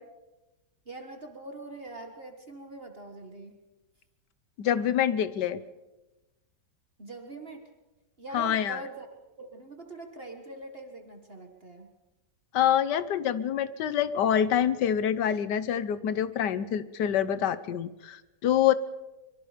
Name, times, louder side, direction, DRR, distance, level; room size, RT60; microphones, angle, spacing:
voice 1, 0.9-3.6 7.0-7.7 8.2-9.1 9.4-11.9, right 2 dB, 35° right, 4 dB, 1.8 m, -43 dB
voice 2, 4.6-5.6 8.3-8.8 12.5-18.7, left 9 dB, 75° left, 15 dB, 1.5 m, -26 dB
24.0 x 23.0 x 5.1 m, 1.0 s
omnidirectional pair, 1.8 m